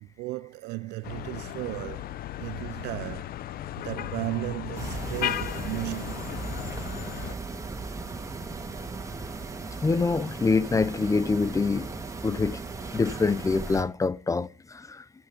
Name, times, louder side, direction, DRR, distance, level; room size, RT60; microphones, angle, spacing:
voice 1, 0.0-3.4 3.8-6.3, right 19 dB, 85° right, 0.6 m, -35 dB
sound 1, 1.0-7.3, left 12 dB, 65° left, 0.8 m, -35 dB
sound 2, 4.8-13.8, right 3 dB, 20° right, 2.8 m, -37 dB
voice 2, 9.8-11.9 12.2-12.6 12.9-15.0, left 4 dB, 20° left, 0.6 m, -25 dB
14.0 x 12.0 x 5.3 m
cardioid pair, 110°, 17 cm